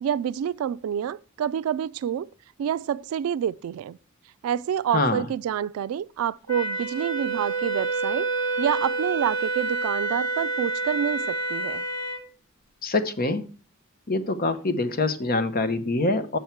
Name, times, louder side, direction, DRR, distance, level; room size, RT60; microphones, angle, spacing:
voice 1, 0.0-2.3 2.6-4.0 4.4-8.3 8.6-11.8, right 9 dB, 85° right, 0.3 m, -28 dB
voice 2, 4.9-5.2 12.8-13.4 14.1-16.4, left 2 dB, 45° left, 0.9 m, -25 dB
Wind instrument woodwind instrument, 6.5-12.2, right 3 dB, 75° left, 1.3 m, -28 dB
7.2 x 7.1 x 4.5 m
head